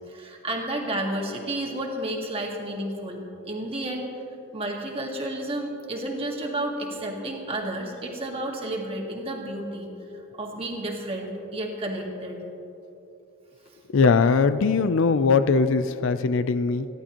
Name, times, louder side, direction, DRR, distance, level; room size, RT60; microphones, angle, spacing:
voice 1, 0.1-4.1 4.5-9.9 10.4-12.4, right 1 dB, 25° right, 0 dB, 1.8 m, -31 dB
voice 2, 13.9-16.9, left 4 dB, 60° left, 12 dB, 0.4 m, -20 dB
29.0 x 11.5 x 3.0 m, 3.0 s
head